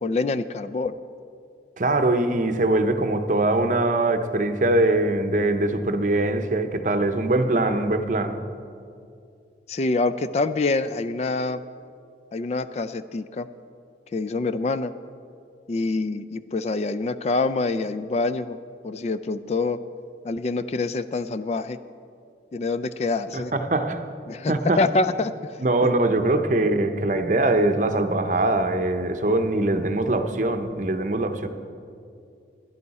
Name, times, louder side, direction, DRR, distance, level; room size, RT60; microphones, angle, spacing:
voice 1, 0.0-0.9 9.7-11.6 12.3-13.5 14.1-14.9 15.7-18.6 18.8-19.8 20.2-21.8 22.5-23.5 24.3-25.3, left 3 dB, 35° left, 0.3 m, -26 dB
voice 2, 1.8-8.4 23.3-24.0 24.5-24.8 25.6-31.5, right 2 dB, 45° right, 0.7 m, -22 dB
16.0 x 11.0 x 4.1 m
head